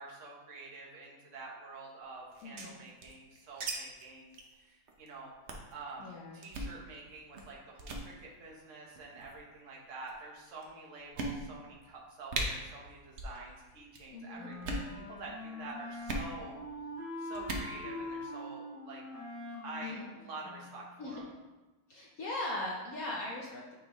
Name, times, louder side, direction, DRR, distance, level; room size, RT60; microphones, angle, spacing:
voice 1, 0.0-5.3 5.7-16.6 17.2-19.0 19.6-21.2, right 3 dB, 45° right, -3 dB, 1.2 m, -48 dB
sound 1, 2.3-3.7 4.0-4.1 4.3-4.5 4.9-5.1 5.5-5.7 6.4-6.7 7.3-7.5 7.8-8.1 8.9-9.4 10.1-10.2 10.6-10.7 11.1-11.7 12.0-12.1 12.3-12.5 13.1-13.4 13.6-14.0 14.5-14.9 16.0-16.3 17.3-17.7, right 2 dB, 70° right, 0.6 m, -37 dB
voice 2, 2.4-2.8 6.0-6.4 14.1-14.5 19.8-20.1 21.0-21.2 21.9-23.7, left 1 dB, 65° left, -2 dB, 0.9 m, -39 dB
Wind instrument woodwind instrument, 14.4-21.0, left 2 dB, 90° left, 2.8 m, -44 dB
8.7 x 3.6 x 3.1 m, 1.2 s
omnidirectional pair, 2.3 m